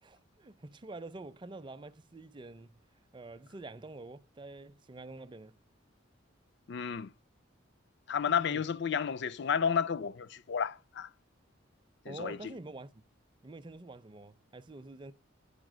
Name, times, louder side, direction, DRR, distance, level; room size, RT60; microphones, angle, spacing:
voice 1, 0.0-2.8 3.1-5.6 8.3-8.7 12.1-13.0 13.4-15.1, right 2 dB, 25° right, 0.5 m, -47 dB
voice 2, 6.7-7.1 8.1-11.1 12.1-12.4, left 7 dB, 60° left, 0.5 m, -31 dB
8.9 x 5.4 x 6.2 m
head